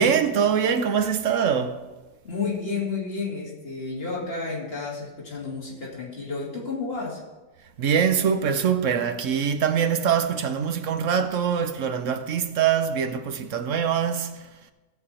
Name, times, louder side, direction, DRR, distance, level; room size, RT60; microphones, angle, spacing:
voice 1, 0.0-1.8 7.8-14.3, right 7 dB, 70° right, 1.2 m, -23 dB
voice 2, 2.2-7.2, left 4 dB, 45° left, 2.8 m, -31 dB
17.5 x 7.0 x 4.3 m
omnidirectional pair, 1.4 m